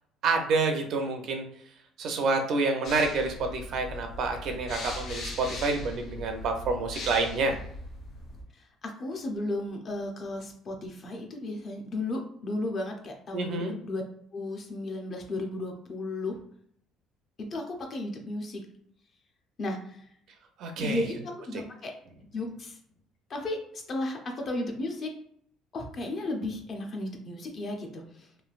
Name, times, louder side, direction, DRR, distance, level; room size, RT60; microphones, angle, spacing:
voice 1, 0.2-1.4 2.0-7.6 13.3-13.7 20.6-21.0, right 3 dB, 50° right, 4 dB, 0.5 m, -28 dB
sound 1, 2.8-8.4, left 2 dB, 50° left, 1.3 m, -40 dB
voice 2, 8.5-14.0 14.3-16.4 17.4-18.6 19.6-20.0 20.8-21.9 22.3-22.8 23.3-25.1 25.7-28.3, left 2 dB, 35° left, 2 dB, 0.6 m, -34 dB
3.1 x 2.6 x 2.4 m, 0.67 s
cardioid pair, 160°, 0 cm